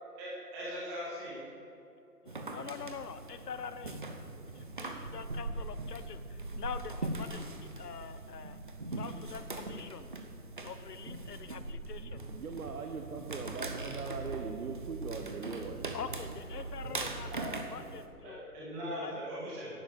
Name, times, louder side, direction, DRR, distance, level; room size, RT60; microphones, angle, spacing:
voice 1, 0.2-1.4 16.8-17.0 17.3-17.5 18.2-19.7, equal, 10° right, -8 dB, 1.6 m, -40 dB
voice 2, 2.2-4.0 4.4-8.6 8.9-10.1 10.6-12.3 15.9-18.4 19.0-19.2, left 6 dB, 75° left, 12 dB, 1.0 m, -45 dB
sound 1, 2.3-18.1, right 2 dB, 30° right, 0.7 m, -41 dB
voice 3, 12.0-15.8, right 5 dB, 60° right, 4 dB, 1.1 m, -40 dB
11.0 x 7.8 x 7.7 m, 2.7 s
hypercardioid pair, 170°, 48 cm